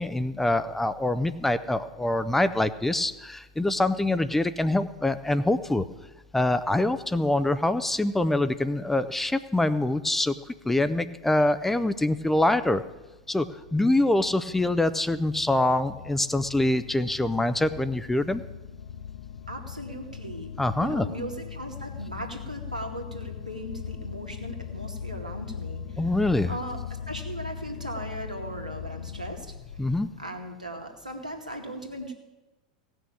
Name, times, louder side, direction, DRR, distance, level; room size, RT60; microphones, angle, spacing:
voice 1, 0.0-5.9 6.3-10.3 10.6-12.8 13.3-18.4 20.6-21.1 26.0-26.5 29.8-30.1, left 2 dB, 5° left, 12 dB, 0.6 m, -25 dB
sound 1, 12.9-30.0, left 7 dB, 60° left, 0.7 m, -40 dB
voice 2, 19.5-26.2 26.5-29.5 30.2-32.1, right 1 dB, 90° right, 1 dB, 2.0 m, -38 dB
16.5 x 6.3 x 8.4 m, 1.1 s
figure-of-eight pair, 90°, 4 cm